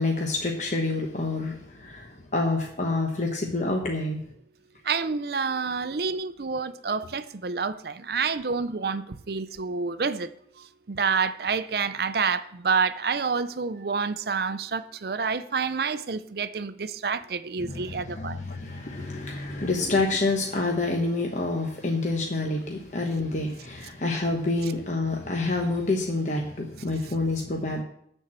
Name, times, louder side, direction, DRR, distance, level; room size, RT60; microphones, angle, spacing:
voice 1, 0.0-4.2 17.6-27.8, left 2 dB, 40° left, 1.0 m, -28 dB
voice 2, 4.9-10.3 10.9-18.4, right 5 dB, 55° right, 0.5 m, -28 dB
12.5 x 4.5 x 7.5 m
head